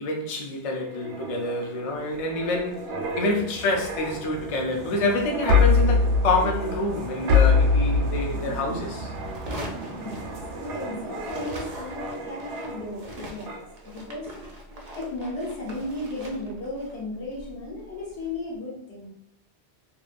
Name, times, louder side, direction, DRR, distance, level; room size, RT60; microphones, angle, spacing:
voice 1, 0.0-2.9 3.2-9.1, left 2 dB, 55° left, 0.3 m, -27 dB
sound 1, 0.8-13.1 13.5-13.7, left 3 dB, 75° right, 0.9 m, -26 dB
sound 2, 9.2-10.9 11.2-18.4, right 1 dB, 55° right, 0.4 m, -41 dB
voice 2, 9.9-14.3 14.9-19.1, left 2 dB, 75° left, 1.2 m, -35 dB
2.8 x 2.2 x 2.4 m
omnidirectional pair, 1.2 m